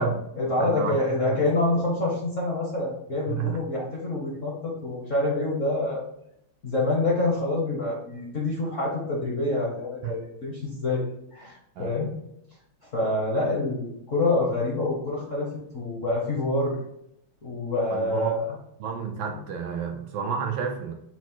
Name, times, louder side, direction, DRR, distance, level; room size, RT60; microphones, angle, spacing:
voice 1, 0.0-6.0 6.6-11.0 11.3-12.1 12.9-15.5 15.7-16.8 17.4-18.5, left 2 dB, 50° left, -3 dB, 0.9 m, -26 dB
voice 2, 0.6-1.0 1.3-1.4 3.3-3.6 10.0-10.1 11.8-12.0 17.9-18.4 18.8-20.9, right 7 dB, 75° right, 3 dB, 1.2 m, -30 dB
5.9 x 2.0 x 4.3 m, 0.77 s
omnidirectional pair, 2.4 m